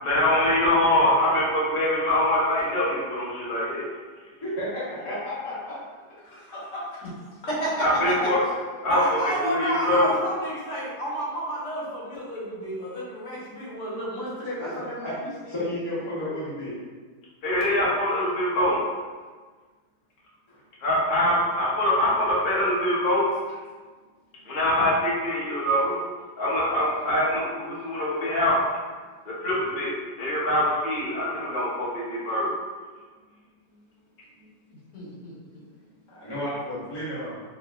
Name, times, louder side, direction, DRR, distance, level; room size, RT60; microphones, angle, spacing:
voice 1, 0.0-3.8 7.8-8.4 8.8-10.1 17.4-18.8 20.8-23.3 24.5-25.9 26.4-28.6 29.3-29.9 30.2-32.5, left 1 dB, 60° left, -7 dB, 0.5 m, -24 dB
voice 2, 4.4-5.8 6.2-7.0 14.6-14.7 15.0-15.1 15.5-16.8 20.5-20.6 24.3-24.5 27.7-27.8 33.3-33.4 33.7-33.8 34.3-34.5 35.8-37.4, left 1 dB, 20° left, -10 dB, 0.7 m, -33 dB
voice 3, 8.9-15.1 34.9-35.6, right 1 dB, 75° left, -6 dB, 1.4 m, -31 dB
2.9 x 2.8 x 2.3 m, 1.5 s
omnidirectional pair, 1.8 m